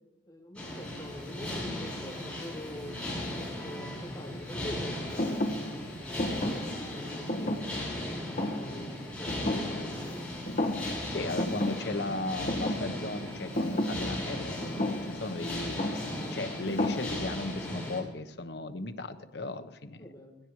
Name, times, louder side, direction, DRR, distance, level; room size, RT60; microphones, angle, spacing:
voice 1, 0.3-3.0 3.3-5.5 6.0-7.7 8.4-10.4 14.7-15.4 20.0-20.4, left 1 dB, 25° left, -2 dB, 3.1 m, -45 dB
sound 1, 0.6-18.0, left 1 dB, 5° left, 7.0 m, -37 dB
Thump thud, 5.2-10.2 10.5-11.1 11.4-17.5, left 1 dB, 50° left, 1.4 m, -34 dB
voice 2, 10.9-16.0 16.3-20.1, left 2 dB, 70° left, 8 dB, 1.1 m, -36 dB
20.5 x 16.5 x 3.2 m, 1.1 s
head